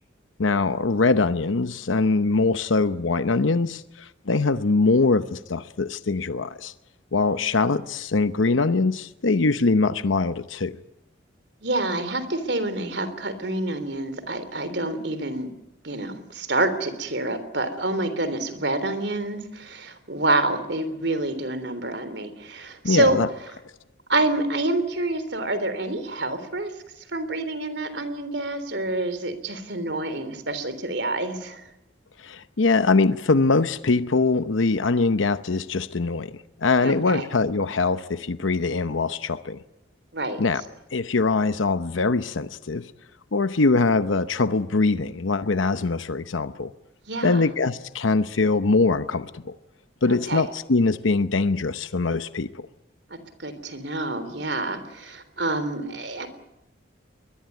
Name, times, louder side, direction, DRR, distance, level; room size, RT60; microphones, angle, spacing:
voice 1, 0.4-6.7 7.1-10.7 22.8-23.3 32.2-39.6 40.4-40.6 40.9-42.9 43.3-46.7 47.2-49.5 50.0-52.7, left 3 dB, 85° left, 0.8 m, -22 dB
voice 2, 11.6-15.5 15.8-23.2 24.1-26.7 27.1-31.6 36.8-37.3 40.1-40.4 47.1-47.4 50.1-50.4 53.4-56.3, right 2 dB, 65° right, 3.4 m, -27 dB
23.0 x 21.0 x 9.4 m
head